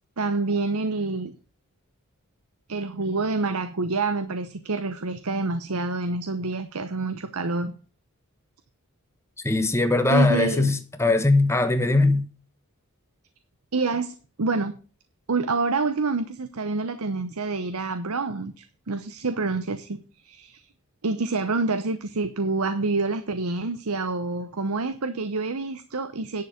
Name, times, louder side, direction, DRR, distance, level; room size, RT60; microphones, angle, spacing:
voice 1, 0.2-1.3 2.7-7.7 10.1-10.7 13.7-14.7 15.3-20.6 21.0-26.4, right 3 dB, 75° right, 0.9 m, -27 dB
voice 2, 9.4-12.3, left 2 dB, 10° left, 1.2 m, -20 dB
10.5 x 6.8 x 6.5 m
head